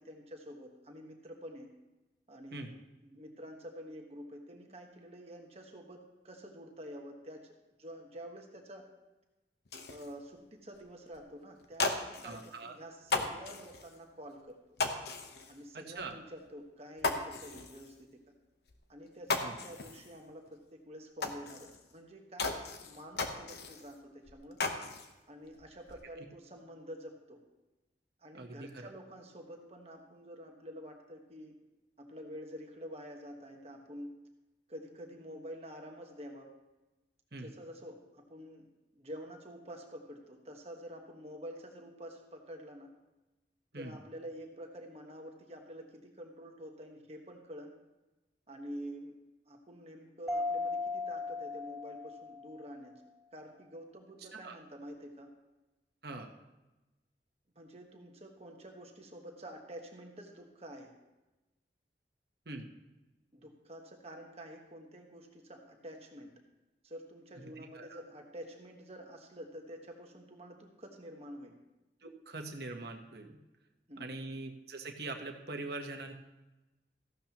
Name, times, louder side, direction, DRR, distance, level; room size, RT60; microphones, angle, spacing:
voice 1, 0.0-1.7 2.3-7.5 7.8-8.9 9.9-14.6 15.5-18.2 18.9-24.6 25.3-27.4 28.2-31.5 32.0-34.1 34.7-36.5 37.3-38.7 38.9-42.9 43.7-47.7 48.5-49.1 49.5-53.0 53.3-55.3 56.1-56.3 57.5-60.9 63.3-66.3 66.8-71.6 73.9-74.2, equal, 35° right, 2 dB, 1.3 m, -48 dB
sound 1, 9.7-10.1 10.7-10.9 11.1-11.2 11.6-12.6 13.0-14.0 14.8-15.6 16.0-16.1 16.5-16.6 17.0-18.0 18.7-18.8 19.1-20.2 20.5-20.6 21.2-21.9 22.4-24.0 24.3-25.1 25.5-26.1, left 3 dB, 65° left, 1.0 m, -36 dB
voice 2, 12.2-12.7 15.7-16.2 19.4-19.6 28.3-28.9 37.3-37.5 43.7-43.9 54.3-54.6 56.0-56.3 62.5-62.7 67.6-68.0 72.0-73.4 74.0-76.1, right 2 dB, 65° right, 4 dB, 1.1 m, -43 dB
Mallet percussion, 50.3-52.8, left 3 dB, 5° right, 0.5 m, -37 dB
14.5 x 12.0 x 3.0 m, 1.0 s
head